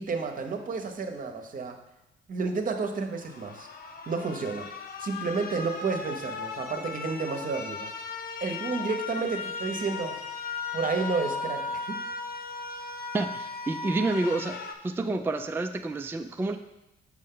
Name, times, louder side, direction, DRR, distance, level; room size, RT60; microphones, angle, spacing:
voice 1, 0.0-1.8 2.3-3.7 4.1-4.7 5.0-7.9 8.4-10.2 10.7-12.0, right 4 dB, 45° right, 5 dB, 0.9 m, -31 dB
sound 1, 3.2-14.7, left 4 dB, 50° left, 0.7 m, -37 dB
voice 2, 13.1-14.6 14.8-16.6, right 2 dB, 10° right, 6 dB, 0.4 m, -29 dB
6.2 x 5.5 x 3.7 m, 0.92 s
cardioid pair, 90°, 20 cm